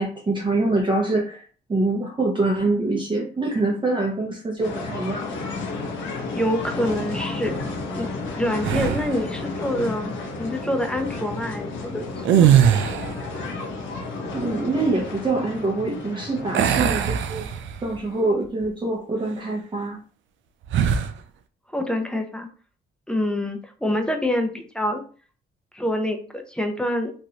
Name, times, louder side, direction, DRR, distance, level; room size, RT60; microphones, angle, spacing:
voice 1, 0.0-1.4 1.7-5.3 14.3-17.5 17.8-20.0, right 2 dB, 25° right, -1 dB, 0.8 m, -24 dB
sound 1, 4.6-16.7, left 3 dB, 80° left, 1.0 m, -32 dB
voice 2, 6.3-7.6 7.9-12.5 21.7-22.5 23.1-25.0 25.7-27.1, left 1 dB, 5° left, 4 dB, 0.6 m, -26 dB
sound 2, 8.6-9.3 12.2-13.3 16.5-18.0 18.5-18.7 20.7-21.2, right 9 dB, 75° right, 0.4 m, -20 dB
3.1 x 2.5 x 2.9 m, 0.40 s
cardioid pair, 90°, 20 cm